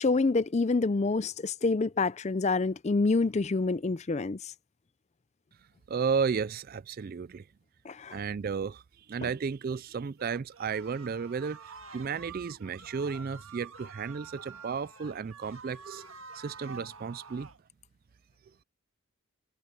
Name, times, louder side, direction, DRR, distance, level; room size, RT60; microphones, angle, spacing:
voice 1, 0.0-4.4 7.9-8.2, left 3 dB, 30° left, 0.4 m, -27 dB
voice 2, 5.9-7.5 8.1-8.8 9.1-16.1 16.3-17.5, right 5 dB, 40° right, 0.3 m, -33 dB
sound 1, 10.2-17.6, right 5 dB, 65° right, 1.7 m, -48 dB
head